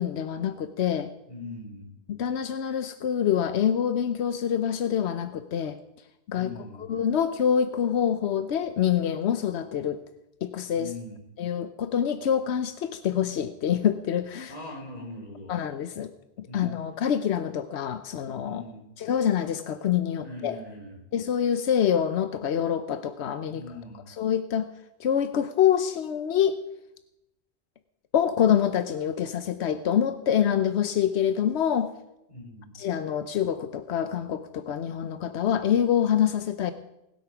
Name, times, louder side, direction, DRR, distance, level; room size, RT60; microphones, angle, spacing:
voice 1, 0.0-1.1 2.1-5.8 6.3-6.5 6.8-10.0 10.4-10.9 11.4-14.5 15.5-16.1 16.4-18.6 19.0-20.6 21.1-23.6 24.1-24.7 25.0-26.6 28.1-31.9 32.7-36.7, left 9 dB, 90° left, 11 dB, 1.0 m, -26 dB
voice 2, 1.3-1.9 6.3-6.9 10.7-11.2 14.5-15.5 16.5-16.8 18.4-18.9 20.2-21.0 23.5-24.1 32.3-32.8, left 2 dB, 35° left, -2 dB, 4.4 m, -41 dB
19.5 x 8.5 x 6.0 m, 0.89 s
omnidirectional pair, 1.1 m